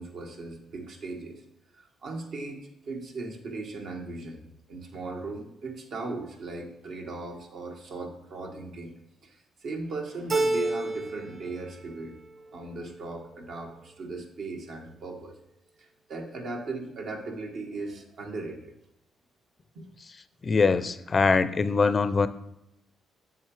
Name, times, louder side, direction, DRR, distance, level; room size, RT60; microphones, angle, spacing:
voice 1, 0.0-1.4 1.7-4.4 4.7-8.9 9.2-12.1 12.5-15.4 15.8-18.7 19.7-19.9, right 3 dB, 70° right, 1 dB, 1.6 m, -38 dB
Keyboard (musical), 10.3-11.4 11.7-12.5, right 2 dB, 35° right, 1.1 m, -29 dB
voice 2, 20.4-22.3, left 4 dB, 35° left, 13 dB, 0.4 m, -23 dB
7.5 x 7.3 x 3.2 m, 0.86 s
cardioid pair, 90°, 0 cm